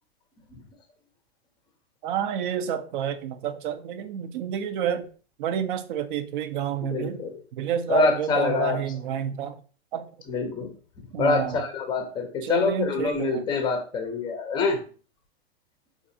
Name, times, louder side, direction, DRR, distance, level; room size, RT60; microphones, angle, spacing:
voice 1, 2.0-5.1 5.4-7.2 7.6-9.5 9.9-10.1 11.1-11.6 12.4-13.4, right 9 dB, 55° right, 0.5 m, -29 dB
voice 2, 6.8-7.3 7.9-8.8 10.3-10.7 11.2-14.8, left 4 dB, 15° left, 0.5 m, -25 dB
3.9 x 2.5 x 2.6 m
supercardioid pair, 145°, 32 cm